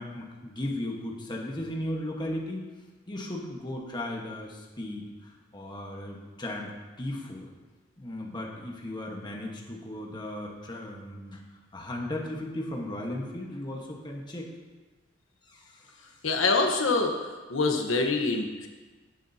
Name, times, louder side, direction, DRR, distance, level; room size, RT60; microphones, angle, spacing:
voice 1, 0.0-2.7 3.1-7.5 8.0-11.4 11.7-14.4 15.4-16.0, left 1 dB, 25° left, -1 dB, 1.3 m, -36 dB
voice 2, 16.2-17.2 17.5-18.7, left 3 dB, 85° left, 2 dB, 1.1 m, -25 dB
17.0 x 7.5 x 2.8 m, 1.3 s
head